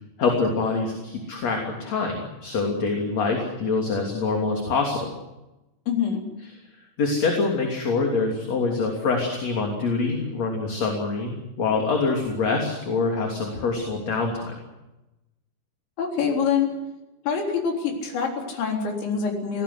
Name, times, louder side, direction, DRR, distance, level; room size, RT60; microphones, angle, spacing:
voice 1, 0.2-5.1 7.0-14.6, left 4 dB, 40° left, 1 dB, 3.8 m, -25 dB
voice 2, 5.9-6.2 16.0-16.7 17.3-19.6, left 6 dB, 85° left, 1 dB, 6.2 m, -25 dB
25.0 x 18.5 x 8.1 m, 0.98 s
omnidirectional pair, 5.0 m